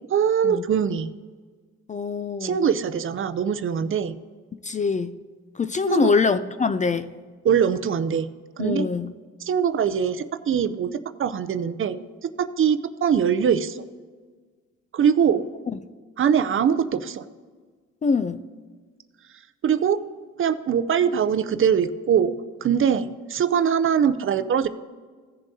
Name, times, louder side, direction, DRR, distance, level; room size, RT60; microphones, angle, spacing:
voice 1, 0.1-1.1 2.4-4.1 5.9-6.1 7.4-8.3 8.6-8.9 9.5-13.8 14.9-15.5 16.2-17.2 19.6-20.0 20.4-24.7, right 7 dB, 45° right, 0.5 m, -22 dB
voice 2, 1.9-2.6 4.6-5.2 5.6-7.1 8.6-9.1 15.7-15.8 18.0-18.4, left 5 dB, 25° left, 0.4 m, -24 dB
16.0 x 7.1 x 2.7 m
cardioid pair, 90°, 30 cm